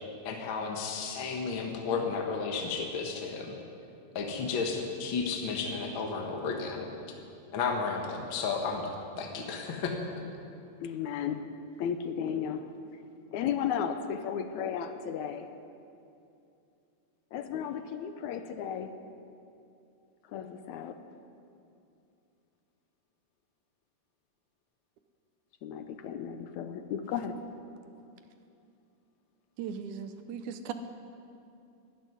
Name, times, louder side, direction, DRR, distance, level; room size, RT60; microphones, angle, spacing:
voice 1, 0.2-3.5 4.1-6.9 7.5-8.9 9.2-9.9, left 5 dB, 50° left, 2 dB, 1.7 m, -33 dB
voice 2, 10.8-11.4 11.8-12.6 13.3-15.5 17.3-18.9 20.3-21.0 25.6-27.4, left 8 dB, 75° left, 9 dB, 2.0 m, -34 dB
voice 3, 29.6-30.7, right 7 dB, 80° right, 9 dB, 2.2 m, -38 dB
12.0 x 12.0 x 9.7 m, 2.6 s
omnidirectional pair, 3.6 m